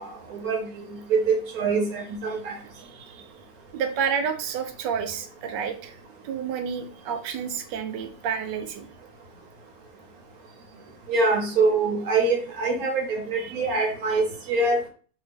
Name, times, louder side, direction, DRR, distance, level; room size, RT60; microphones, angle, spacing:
voice 1, 0.0-2.6 11.1-14.8, right 3 dB, 65° right, 2 dB, 1.1 m, -24 dB
voice 2, 2.8-3.2 3.7-5.9 6.2-8.9, right 7 dB, 80° right, 7 dB, 1.2 m, -30 dB
2.7 x 2.7 x 3.3 m, 0.42 s
omnidirectional pair, 1.9 m